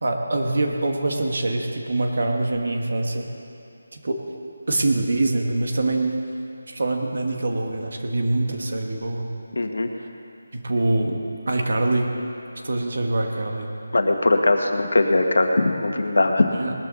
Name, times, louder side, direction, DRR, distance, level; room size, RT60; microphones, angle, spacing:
voice 1, 0.0-3.3 3.9-4.2 4.7-6.2 6.7-9.2 10.0-10.1 10.5-11.2 11.5-12.1 12.6-13.7 16.6-16.7, right 2 dB, 50° right, 2 dB, 1.5 m, -24 dB
voice 2, 9.5-9.9 13.9-16.5, left 2 dB, 70° left, 4 dB, 1.6 m, -20 dB
20.0 x 13.5 x 4.0 m, 2.6 s
figure-of-eight pair, 180°, 0 cm